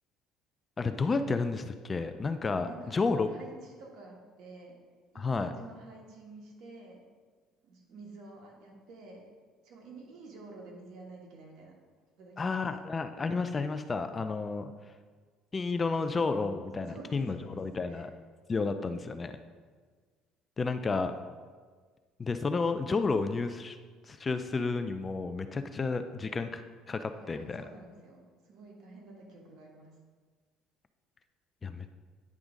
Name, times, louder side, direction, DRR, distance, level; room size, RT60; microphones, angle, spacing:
voice 1, 0.8-3.3 5.2-5.5 12.4-14.7 15.5-18.1 18.5-19.3 20.6-21.1 22.2-23.8 24.1-26.6 26.9-27.6 31.6-31.9, left 4 dB, 25° left, 9 dB, 0.3 m, -31 dB
voice 2, 2.6-4.7 5.1-7.0 7.6-9.3 9.6-11.7 12.2-12.7 16.8-17.6 17.9-18.1 27.2-29.9, right 3 dB, 65° right, 0 dB, 1.5 m, -50 dB
9.4 x 3.6 x 5.1 m, 1.5 s
cardioid pair, 125°, 0 cm